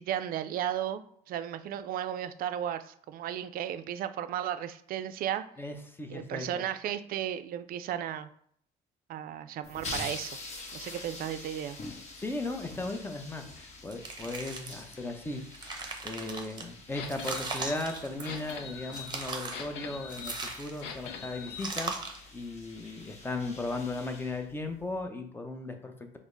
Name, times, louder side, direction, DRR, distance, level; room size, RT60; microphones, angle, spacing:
voice 1, 0.0-5.5 6.1-8.3 9.1-10.4 10.7-11.8, right 10 dB, 60° right, 11 dB, 0.4 m, -34 dB
voice 2, 5.6-6.6 12.2-21.9 22.3-26.2, left 2 dB, 15° left, 5 dB, 0.6 m, -37 dB
sound 1, 9.6-25.0, left 3 dB, 40° left, 1.0 m, -46 dB
sound 2, 13.9-14.9 15.4-16.6 17.1-18.6 18.9-19.7 20.1-21.0 21.6-22.3, right 4 dB, 25° right, 0.8 m, -38 dB
sound 3, 16.9-21.8, left 7 dB, 85° left, 0.5 m, -43 dB
4.9 x 2.0 x 3.8 m, 0.64 s
cardioid pair, 110°, 17 cm